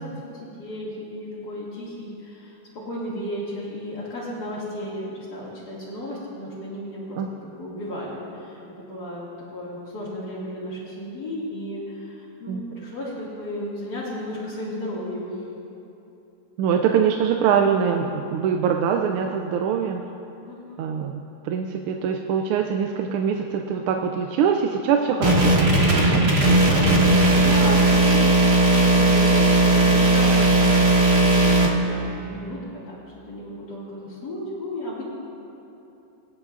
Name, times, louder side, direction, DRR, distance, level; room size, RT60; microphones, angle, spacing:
voice 1, 0.0-15.4 20.4-20.9 27.4-33.0 33.3-35.0, left 1 dB, 50° left, -10 dB, 2.3 m, -34 dB
voice 2, 16.6-20.0 20.8-26.2 26.7-27.1, right 7 dB, 90° right, 3 dB, 1.5 m, -23 dB
sound 1, 25.2-31.7, right 2 dB, 35° right, 1.1 m, -17 dB
23.0 x 9.3 x 2.5 m, 2.9 s
omnidirectional pair, 2.3 m